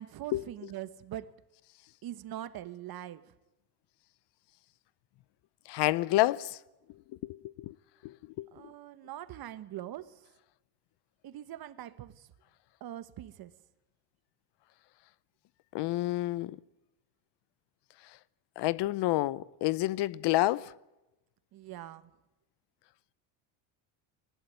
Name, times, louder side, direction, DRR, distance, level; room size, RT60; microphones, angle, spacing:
voice 1, 0.0-1.3 2.0-3.3 8.5-10.2 11.2-12.3 12.8-13.5 21.5-22.1, right 12 dB, 45° right, 1.4 m, -42 dB
voice 2, 5.7-6.6 7.2-7.7 8.0-8.5 15.7-16.6 18.6-20.7, left 17 dB, 55° left, 0.7 m, -29 dB
21.0 x 19.5 x 9.3 m
cardioid pair, 120°, 49 cm